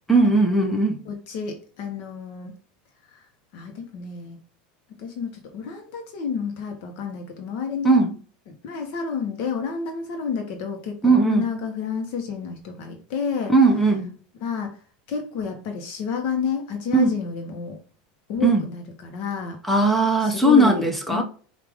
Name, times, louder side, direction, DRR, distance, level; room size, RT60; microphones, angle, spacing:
voice 1, 0.1-1.0 7.8-8.1 11.0-11.4 13.5-14.1 16.9-17.1 18.4-18.6 19.7-21.2, right 2 dB, 5° left, 0.5 m, -18 dB
voice 2, 1.0-2.5 3.1-3.2 3.5-4.4 5.0-8.0 8.5-13.5 14.4-14.8 15.1-17.8 18.3-19.6 20.2-20.8 21.1-21.2, left 6 dB, 50° left, 0.9 m, -30 dB
4.8 x 2.5 x 3.4 m
supercardioid pair, 150°, 5 cm